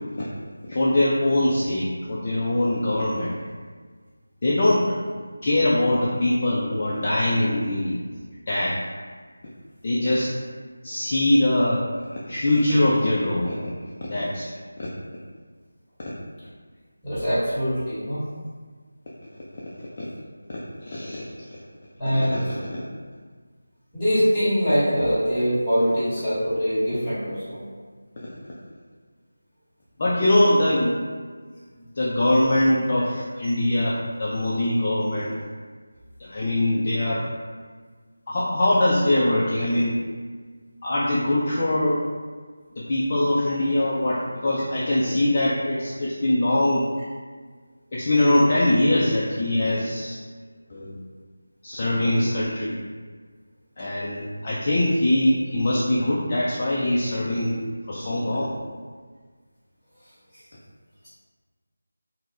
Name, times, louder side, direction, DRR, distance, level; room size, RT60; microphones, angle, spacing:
voice 1, 0.7-3.4 4.4-5.0 5.4-8.0 8.5-8.8 9.8-10.3 10.8-11.8 12.3-13.6 14.0-14.5 14.8-14.9 20.0-20.1 20.9-21.3 22.5-22.6 28.2-28.3 30.0-31.0 32.0-35.3 36.2-37.2 38.3-40.0 40.8-42.0 42.8-46.8 47.9-50.2 50.7-51.0 51.6-52.8 53.8-57.6 57.9-58.5, left 1 dB, 30° left, -7 dB, 0.3 m, -22 dB
voice 2, 17.0-18.2 22.0-22.4 23.9-27.6, equal, 5° left, -14 dB, 1.4 m, -23 dB
3.3 x 2.0 x 2.5 m, 1.5 s
figure-of-eight pair, 165°, 0 cm